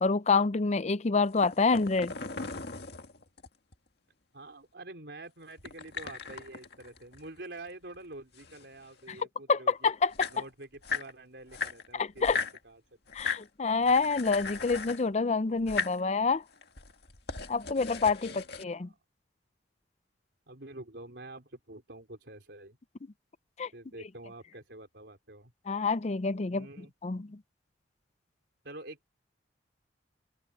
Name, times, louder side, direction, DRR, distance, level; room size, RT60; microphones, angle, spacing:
voice 1, 0.0-2.5 9.1-9.2 9.5-10.3 11.9-12.4 13.1-16.4 17.5-18.3 18.6-18.9 23.6-23.7 25.7-27.4, left 4 dB, 40° left, 0.5 m, -27 dB
sound 1, 1.3-3.7 5.6-7.7 7.9-9.2 9.8-9.9 10.0-11.1 11.5-12.6 13.1-13.5 13.8-15.1 15.6-16.0 16.5-18.6, left 4 dB, 60° left, 1.9 m, -38 dB
voice 2, 4.3-9.9 10.3-12.8 18.3-19.0 20.5-22.8 23.7-25.5 26.5-26.9 28.6-29.1, right 2 dB, 70° right, 4.4 m, -47 dB
open air
head